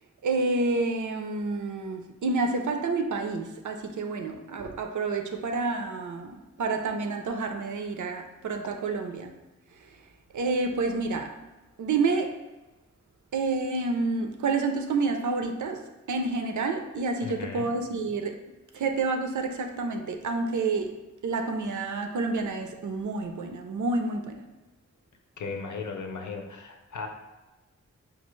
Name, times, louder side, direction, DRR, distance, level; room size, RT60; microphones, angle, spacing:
voice 1, 0.2-9.3 10.3-11.3 11.8-12.4 13.3-18.4 18.7-24.4, right 3 dB, 80° right, 5 dB, 0.5 m, -29 dB
voice 2, 17.2-17.7 25.4-27.1, left 4 dB, 80° left, 3 dB, 0.7 m, -36 dB
5.5 x 2.4 x 3.1 m, 1.1 s
wide cardioid pair, 115°, 29 cm